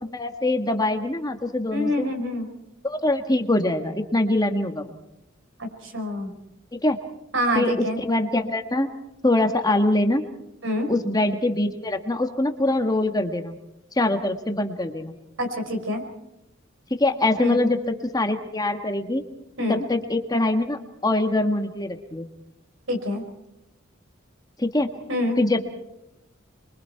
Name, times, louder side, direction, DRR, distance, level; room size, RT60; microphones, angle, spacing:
voice 1, 0.0-2.1 2.8-4.9 6.7-7.0 7.5-8.9 9.2-10.2 10.9-13.5 14.0-15.1 17.0-19.2 19.7-22.3 24.6-24.9 25.4-25.7, left 2 dB, 20° left, 6 dB, 1.5 m, -23 dB
voice 2, 1.7-2.5 5.8-6.3 7.3-8.0 10.6-10.9 15.4-16.0 17.4-17.6 19.6-19.8 22.9-23.2 25.1-25.4, left 1 dB, 70° right, 5 dB, 5.0 m, -26 dB
27.0 x 23.5 x 4.6 m, 0.86 s
head